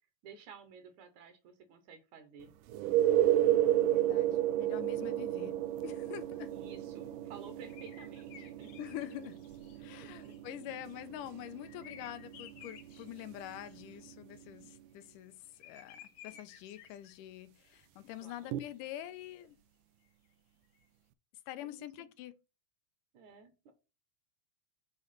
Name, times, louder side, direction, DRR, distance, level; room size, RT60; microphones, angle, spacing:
voice 1, 0.2-2.5 6.5-8.7 9.7-10.4 18.2-18.6 21.6-22.1 23.1-23.7, right 5 dB, 70° right, 2.4 m, -53 dB
sound 1, 2.7-14.2 18.5-18.6, right 12 dB, 85° right, 2.2 m, -32 dB
voice 2, 3.9-6.5 8.8-9.4 9.8-19.6 21.5-22.4, left 13 dB, 85° left, 2.3 m, -46 dB
sound 2, 7.7-10.9 11.6-14.0 15.6-17.3 17.8-17.9 18.2-18.7 20.8-20.9, left 9 dB, 65° left, 1.9 m, -55 dB
8.4 x 3.2 x 5.7 m
omnidirectional pair, 3.6 m